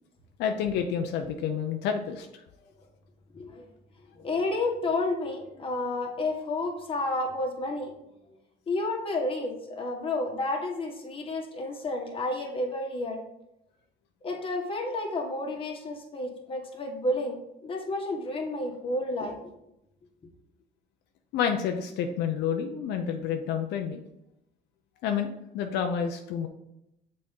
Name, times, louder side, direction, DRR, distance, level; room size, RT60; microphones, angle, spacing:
voice 1, 0.4-2.3 21.3-24.0 25.0-26.5, left 7 dB, 80° left, 4 dB, 0.6 m, -29 dB
voice 2, 3.3-3.7 4.1-7.9 8.7-13.2 14.2-19.5, left 2 dB, 30° left, 0 dB, 1.5 m, -31 dB
6.4 x 4.3 x 3.7 m, 0.85 s
cardioid pair, 110°, 17 cm